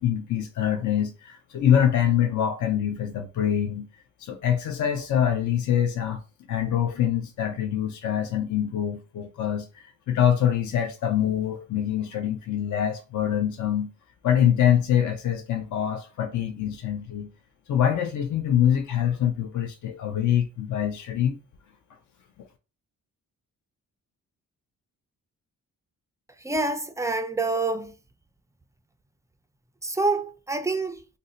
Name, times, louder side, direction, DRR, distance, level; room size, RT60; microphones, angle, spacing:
voice 1, 0.0-3.9 4.2-6.2 6.5-13.9 14.2-17.3 17.7-21.4, left 10 dB, 65° left, 0.5 m, -24 dB
voice 2, 26.4-27.9 29.8-31.0, right 3 dB, 10° right, 0.3 m, -27 dB
2.6 x 2.1 x 3.7 m
cardioid pair, 70°, 34 cm